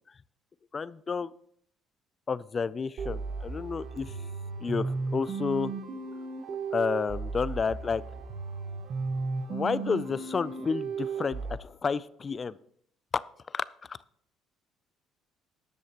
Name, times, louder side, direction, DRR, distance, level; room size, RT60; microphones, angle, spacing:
voice 1, 0.7-1.3 2.3-4.1 4.6-5.7 6.7-8.0 9.5-12.6 13.1-13.2 13.5-14.0, left 5 dB, 35° left, 19 dB, 0.4 m, -31 dB
sound 1, 3.0-11.6, right 4 dB, 55° right, 1.2 m, -35 dB
14.0 x 10.5 x 2.9 m, 0.66 s
supercardioid pair, 85°, 0 cm